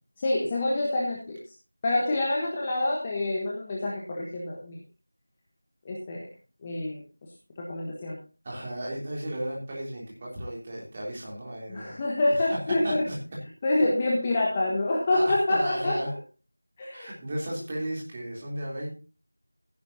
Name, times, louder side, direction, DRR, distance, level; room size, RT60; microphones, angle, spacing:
voice 1, 0.2-1.4 1.8-4.8 5.8-6.3 6.6-7.0 7.6-8.2 11.7-13.0 13.6-16.0 16.8-17.1, left 2 dB, 15° left, -3 dB, 1.2 m, -27 dB
voice 2, 8.4-12.0 12.3-12.6 12.8-13.1 15.1-16.1 16.9-18.9, right 1 dB, 15° right, -4 dB, 3.2 m, -34 dB
14.5 x 10.5 x 2.8 m, 0.33 s
figure-of-eight pair, 175°, 0 cm